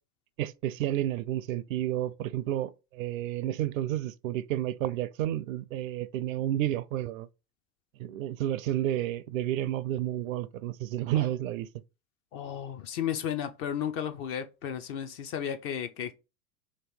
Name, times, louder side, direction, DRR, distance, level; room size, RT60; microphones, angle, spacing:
voice 1, 0.4-7.3 8.0-11.7, right 13 dB, 60° right, 0.5 m, -31 dB
voice 2, 12.3-16.1, left 9 dB, 30° left, 0.4 m, -33 dB
3.0 x 3.0 x 4.4 m
hypercardioid pair, 90°, 46 cm